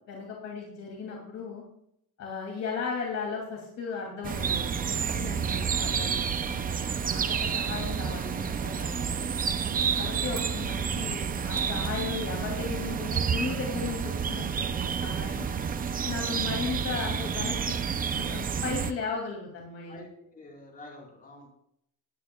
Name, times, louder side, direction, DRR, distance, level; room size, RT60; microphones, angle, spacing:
voice 1, 0.1-1.6 2.2-6.2 6.5-9.1 10.0-15.5 16.0-20.0, left 5 dB, 50° left, -1 dB, 2.7 m, -36 dB
sound 1, 4.2-18.9, right 7 dB, 25° right, 0.4 m, -30 dB
voice 2, 10.2-10.5 19.9-21.5, left 2 dB, 25° left, -2 dB, 4.3 m, -48 dB
19.5 x 9.4 x 2.3 m, 0.72 s
cardioid pair, 170°, 35 cm